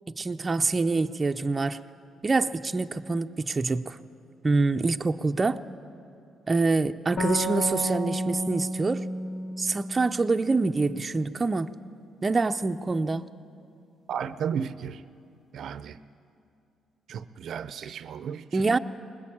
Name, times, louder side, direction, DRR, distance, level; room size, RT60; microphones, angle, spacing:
voice 1, 0.1-1.8 2.2-4.0 4.4-5.6 6.5-9.1 9.6-11.7 12.2-13.3 18.5-18.8, right 3 dB, 25° right, 7 dB, 0.6 m, -25 dB
sound 1, 7.2-10.7, equal, 50° left, 2.3 m, -32 dB
voice 2, 14.1-15.0 15.5-16.0 17.1-18.7, right 7 dB, 70° right, 13 dB, 0.6 m, -34 dB
20.5 x 20.0 x 8.6 m, 2.5 s
cardioid pair, 90°, 0 cm